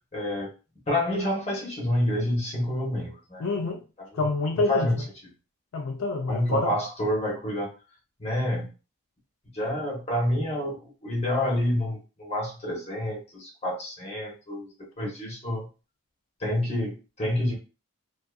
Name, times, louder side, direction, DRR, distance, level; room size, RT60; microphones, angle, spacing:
voice 1, 0.1-0.5 0.9-3.5 4.6-5.0 6.3-7.7 8.2-8.7 9.5-15.7 16.4-17.6, left 1 dB, 30° left, 0.8 m, -28 dB
voice 2, 3.4-3.8 4.1-4.9 5.7-6.8, left 2 dB, 80° left, 0.4 m, -27 dB
2.5 x 2.4 x 2.3 m
head